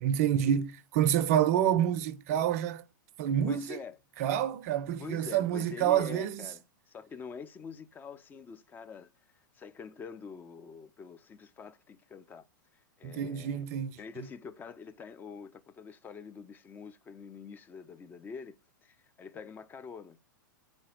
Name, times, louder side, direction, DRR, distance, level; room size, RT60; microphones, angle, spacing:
voice 1, 0.0-2.8 3.2-3.8 4.2-6.4 13.0-13.9, right 10 dB, 45° right, 0.4 m, -28 dB
voice 2, 3.4-4.0 5.0-9.1 9.5-12.5 12.7-13.6 14.0-20.2, left 6 dB, 15° left, 0.4 m, -46 dB
4.2 x 2.8 x 3.0 m
figure-of-eight pair, 100°, 11 cm